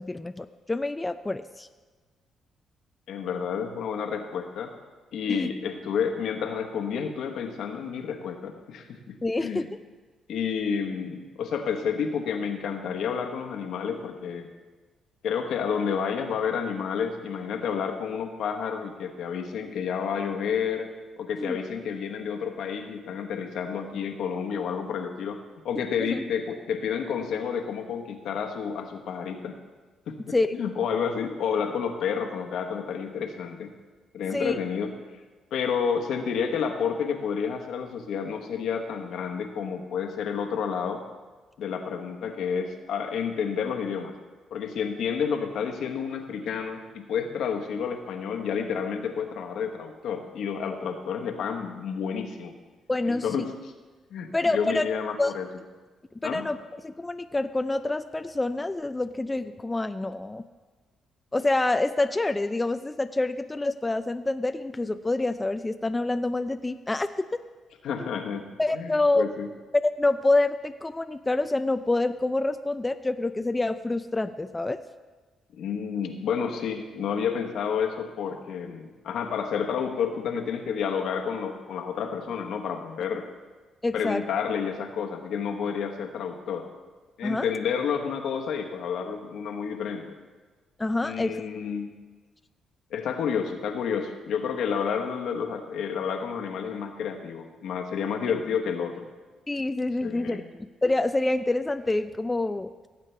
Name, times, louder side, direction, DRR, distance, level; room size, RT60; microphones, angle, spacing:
voice 1, 0.0-1.7 5.3-5.5 9.2-9.7 21.4-21.6 26.0-26.2 30.3-30.5 34.3-34.6 52.9-53.4 54.3-54.9 55.2-55.3 56.2-60.4 61.3-67.3 68.6-69.2 70.0-74.8 83.8-84.2 87.2-87.5 90.8-91.4 99.5-102.7, left 2 dB, 15° left, 9 dB, 0.4 m, -27 dB
voice 2, 3.1-4.7 5.1-9.1 9.4-9.7 10.3-14.5 15.2-20.9 21.2-25.4 25.6-29.5 30.1-33.7 34.1-34.9 35.5-41.0 41.6-44.1 44.5-52.5 53.0-53.7 54.1-55.5 56.2-56.5 67.8-69.5 75.6-83.3 83.9-86.7 87.2-90.2 91.0-91.9 92.9-99.1 100.0-100.5, left 7 dB, 75° left, 4 dB, 1.2 m, -30 dB
17.0 x 8.3 x 3.3 m, 1.3 s
cardioid pair, 90°, 0 cm